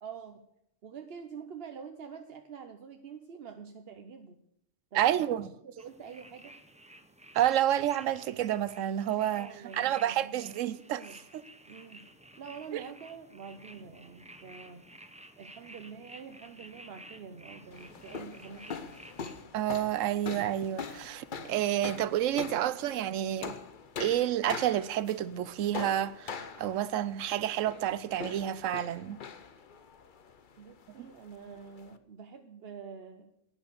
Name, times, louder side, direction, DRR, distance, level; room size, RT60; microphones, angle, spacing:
voice 1, 0.0-0.4 0.8-4.4 4.9-6.5 9.4-10.5 10.9-11.2 11.7-12.0 12.4-14.9 15.4-19.0 30.6-33.3, right 6 dB, 55° right, 1.0 m, -46 dB
voice 2, 4.9-5.5 7.3-11.0 11.3-11.4 12.7-12.8 19.5-23.6 24.0-29.2 31.0-31.1, right 11 dB, 90° right, 1.0 m, -29 dB
sound 1, 5.8-19.4, right 1 dB, 5° right, 0.7 m, -53 dB
sound 2, 17.7-32.0, left 5 dB, 45° left, 0.9 m, -43 dB
11.0 x 9.6 x 6.8 m
omnidirectional pair, 1.3 m